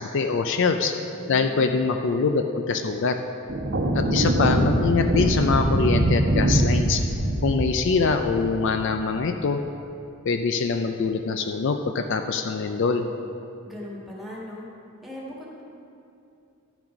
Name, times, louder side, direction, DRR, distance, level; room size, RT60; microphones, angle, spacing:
voice 1, 0.0-0.9 1.3-3.2 3.9-7.0 7.4-9.6 10.2-13.0, left 4 dB, 55° left, 6 dB, 0.4 m, -24 dB
voice 2, 1.1-1.9 13.6-14.7 15.0-15.6, left 1 dB, ahead, -5 dB, 1.6 m, -39 dB
sound 1, 3.5-9.1, right 1 dB, 60° right, 1.0 m, -23 dB
12.5 x 6.1 x 5.1 m, 2.7 s
head